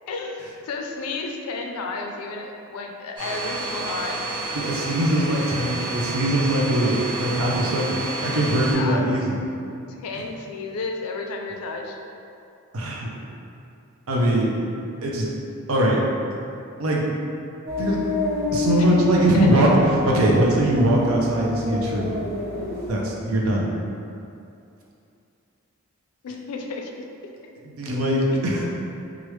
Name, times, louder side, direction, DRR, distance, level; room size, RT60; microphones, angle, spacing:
voice 1, 0.1-4.3 8.7-9.0 10.0-12.0 18.8-19.7 26.2-27.0 28.3-28.4, left 3 dB, 90° left, 2 dB, 0.4 m, -32 dB
Domestic sounds home sounds, 3.2-8.7, right 2 dB, 20° right, 1.1 m, -30 dB
voice 2, 4.5-9.4 12.7-13.1 14.1-14.6 15.0-15.3 15.7-16.0 16.8-17.2 17.8-18.0 18.5-19.8 20.0-22.1 22.9-23.7 27.6-28.6, right 1 dB, 75° right, -2 dB, 0.5 m, -21 dB
sound 1, 17.7-22.9, left 2 dB, 45° right, 0.8 m, -28 dB
3.1 x 2.4 x 3.1 m, 2.6 s
head